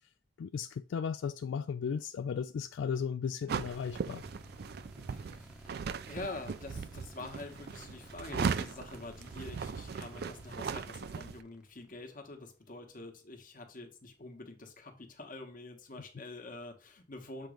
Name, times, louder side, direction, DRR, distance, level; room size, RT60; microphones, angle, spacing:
voice 1, 0.4-4.2, left 6 dB, 80° left, 0.3 m, -35 dB
sound 1, 3.5-12.7, equal, 5° right, 0.7 m, -54 dB
sound 2, 3.5-11.4, right 6 dB, 55° right, 0.4 m, -38 dB
voice 2, 5.1-17.5, left 2 dB, 45° left, 1.3 m, -46 dB
7.4 x 3.1 x 5.0 m
head